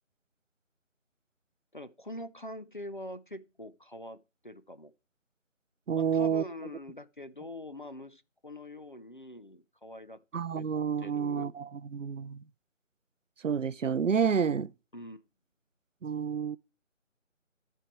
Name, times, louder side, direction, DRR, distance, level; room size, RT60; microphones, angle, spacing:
voice 1, 1.7-4.9 6.0-10.2 10.5-10.6 11.0-11.5 14.9-15.3, left 1 dB, 40° left, 0.6 m, -44 dB
voice 2, 5.9-6.4 10.3-12.4 13.4-14.7 16.0-16.6, right 7 dB, 70° right, 0.6 m, -29 dB
13.0 x 4.6 x 4.6 m
figure-of-eight pair, 160°, 39 cm